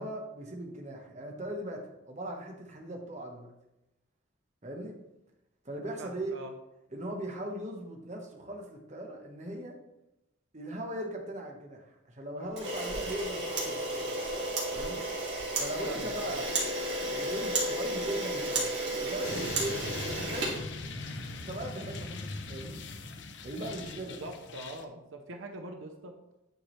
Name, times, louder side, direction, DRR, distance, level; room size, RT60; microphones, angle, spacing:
voice 1, 0.0-3.5 4.6-5.0 5.6-6.4 6.9-9.8 10.5-14.1 14.7-15.0 15.6-16.5 17.1-18.7 19.0-19.8 20.1-20.6 21.5-22.2 22.5-22.8 23.4-24.2, right 1 dB, 35° right, 1 dB, 1.1 m, -39 dB
voice 2, 6.0-6.5 15.9-16.5 24.2-26.1, right 2 dB, 80° right, 4 dB, 0.7 m, -43 dB
Camera, 12.5-21.3, right 1 dB, 60° right, 2.0 m, -33 dB
sound 1, 19.2-24.8, left 3 dB, 65° left, 0.6 m, -40 dB
9.0 x 4.8 x 3.2 m, 0.90 s
head